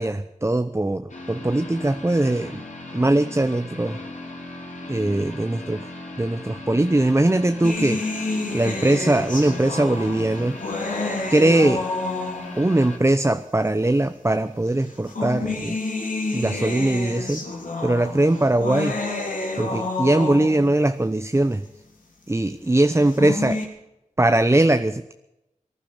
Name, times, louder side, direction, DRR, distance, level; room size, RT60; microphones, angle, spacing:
voice 1, 0.0-2.6 2.9-4.0 4.9-5.9 6.2-8.0 8.5-10.6 11.3-11.9 12.5-15.8 16.3-17.5 17.8-19.0 19.6-21.7 22.3-23.6 24.2-25.1, right 1 dB, 20° right, 10 dB, 0.8 m, -21 dB
sound 1, 1.1-13.0, left 2 dB, 65° left, 4.9 m, -38 dB
sound 2, 7.6-12.7 13.7-13.8 14.8-20.7 22.9-23.6, left 3 dB, 85° left, 3.8 m, -29 dB
18.5 x 11.0 x 6.7 m, 0.90 s
cardioid pair, 45°, 13 cm